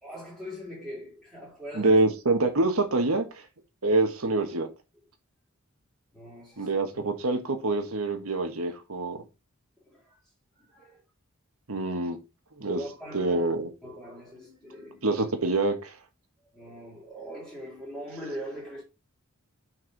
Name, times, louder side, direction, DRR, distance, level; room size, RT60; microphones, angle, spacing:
voice 1, 0.0-2.0 6.1-7.0 9.9-10.2 10.7-11.0 12.6-13.4 13.8-15.1 16.5-18.8, equal, ahead, 3.0 m, -41 dB
voice 2, 1.7-3.2 3.8-4.7 6.6-9.2 11.7-12.2 12.6-12.8 13.1-13.7 15.0-15.9, right 2 dB, 85° right, 1.4 m, -25 dB
6.3 x 4.7 x 4.6 m
head